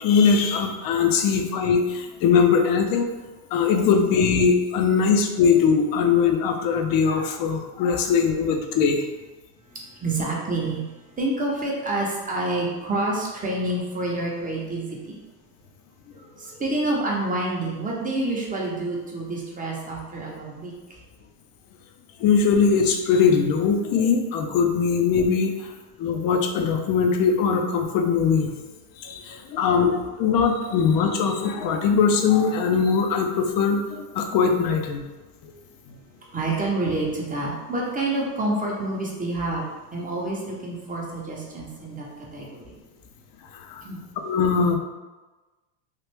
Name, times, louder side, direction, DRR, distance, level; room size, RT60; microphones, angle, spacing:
voice 1, 0.0-3.1 3.5-9.0 22.2-25.7 26.0-28.5 29.0-35.0 35.4-35.5 43.5-43.8 44.2-44.8, left 6 dB, 45° left, 4 dB, 0.6 m, -21 dB
voice 2, 9.7-15.2 16.1-20.7 36.3-42.1 42.3-42.8 43.8-44.0, right 2 dB, 15° right, -3 dB, 0.7 m, -28 dB
3.2 x 2.4 x 3.3 m, 1.2 s
supercardioid pair, 100°, 49 cm